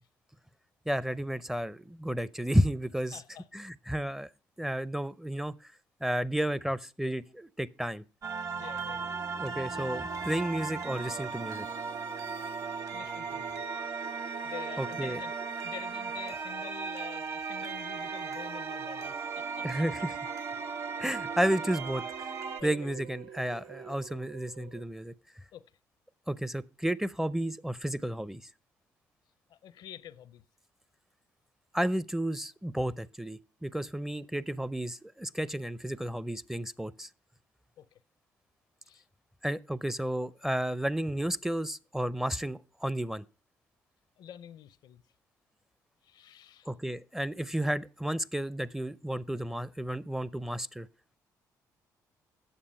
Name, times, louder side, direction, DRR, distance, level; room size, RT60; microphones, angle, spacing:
voice 1, 0.9-3.2 3.5-4.3 4.6-5.5 6.0-8.0 9.4-11.7 14.8-15.2 19.6-20.2 21.0-22.0 22.6-25.1 26.3-28.4 31.7-37.1 39.4-43.2 46.7-50.9, right 1 dB, 5° right, 0.5 m, -32 dB
voice 2, 3.1-3.5 8.6-9.1 12.9-13.6 14.4-15.3 15.6-19.8 22.6-23.0 25.5-25.7 29.5-30.4 37.8-38.0 38.8-39.1 44.2-45.0 46.0-46.7, left 10 dB, 70° left, 0.6 m, -47 dB
sound 1, 8.2-22.6, right 5 dB, 45° right, 1.0 m, -37 dB
sound 2, 8.8-24.8, right 9 dB, 80° right, 0.5 m, -48 dB
sound 3, 9.7-17.1 17.4-18.9, right 4 dB, 60° right, 2.3 m, -63 dB
8.9 x 7.1 x 5.5 m
supercardioid pair, 70°, 8 cm